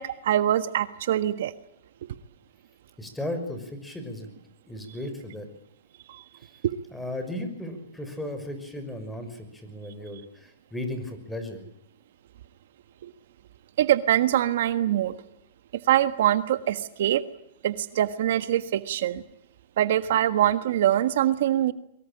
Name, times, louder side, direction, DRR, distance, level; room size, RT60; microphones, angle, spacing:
voice 1, 0.0-1.5 6.1-6.2 6.6-6.8 13.0-13.1 13.8-15.2 15.9-17.2 17.6-19.2 19.8-21.7, right 12 dB, 65° right, 12 dB, 1.4 m, -23 dB
voice 2, 3.0-4.3 4.6-5.5 6.4-6.5 6.9-11.6, left 1 dB, 5° left, 7 dB, 5.8 m, -35 dB
23.5 x 23.0 x 8.8 m, 0.77 s
hypercardioid pair, 140°, 0 cm